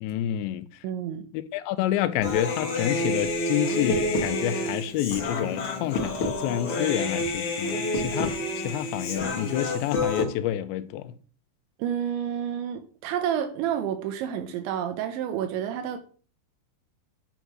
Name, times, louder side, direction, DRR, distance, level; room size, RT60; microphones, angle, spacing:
voice 1, 0.0-0.7 1.3-11.2, left 12 dB, 80° left, 3.0 m, -28 dB
voice 2, 0.8-1.2 11.8-16.0, right 9 dB, 85° right, 3.3 m, -29 dB
Human voice, 2.2-10.2, left 2 dB, 55° left, 1.6 m, -28 dB
10.5 x 5.2 x 6.1 m
omnidirectional pair, 5.2 m